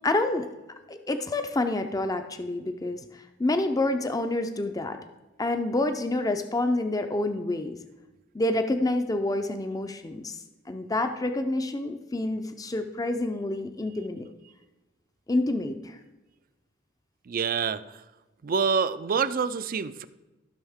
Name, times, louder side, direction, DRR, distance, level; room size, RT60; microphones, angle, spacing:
voice 1, 0.0-0.5 0.9-3.0 3.4-5.0 5.4-7.8 8.3-10.4 10.7-14.3 15.3-16.0, left 2 dB, 20° left, 8 dB, 0.5 m, -28 dB
voice 2, 17.3-18.0 18.4-20.1, right 6 dB, 45° right, 14 dB, 0.4 m, -27 dB
14.5 x 6.3 x 3.6 m, 1.1 s
head